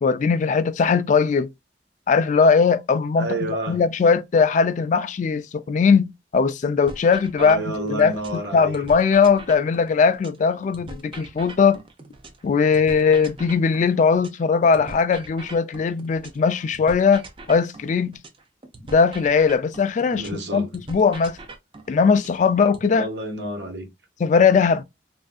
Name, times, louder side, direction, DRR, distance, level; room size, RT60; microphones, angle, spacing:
voice 1, 0.0-1.5 2.1-3.3 3.7-8.2 8.5-11.8 12.4-17.2 17.5-18.2 18.9-21.4 21.9-23.1 24.2-24.8, left 5 dB, 45° left, 0.3 m, -19 dB
voice 2, 3.2-3.8 7.4-8.8 20.1-20.7 22.9-23.9, right 1 dB, 75° right, 1.0 m, -29 dB
sound 1, 6.9-8.4 8.7-12.4 12.7-16.4 16.7-20.4 20.7-22.9, right 2 dB, 30° right, 0.5 m, -41 dB
3.3 x 2.5 x 2.4 m
head